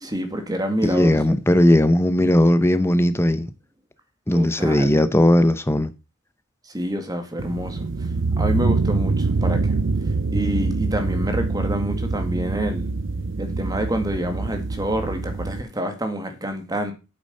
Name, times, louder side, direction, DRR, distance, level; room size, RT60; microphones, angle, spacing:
voice 1, 0.0-1.2 4.3-5.0 6.7-7.9 8.4-9.8 10.3-12.9 13.4-16.9, equal, 20° right, 1.8 m, -27 dB
voice 2, 0.8-3.5 4.3-5.9, left 1 dB, 10° left, 0.7 m, -17 dB
sound 1, 7.4-15.6, right 3 dB, 65° right, 0.6 m, -24 dB
8.9 x 6.9 x 5.4 m
head